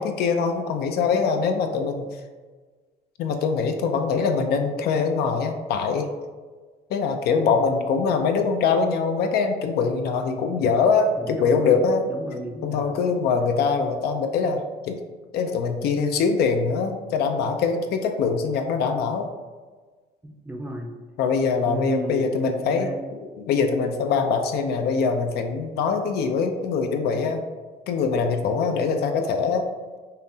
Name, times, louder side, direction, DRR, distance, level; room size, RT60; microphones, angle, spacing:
voice 1, 0.0-2.1 3.2-6.1 6.9-12.1 12.6-15.0 15.3-19.3 21.2-27.4 27.9-29.6, left 5 dB, 70° left, 5 dB, 0.4 m, -23 dB
voice 2, 11.1-11.7 12.1-12.9 20.2-20.9 21.6-23.1, right 2 dB, 10° right, 1 dB, 0.5 m, -34 dB
5.5 x 2.0 x 2.7 m, 1.4 s
cardioid pair, 110°, 17 cm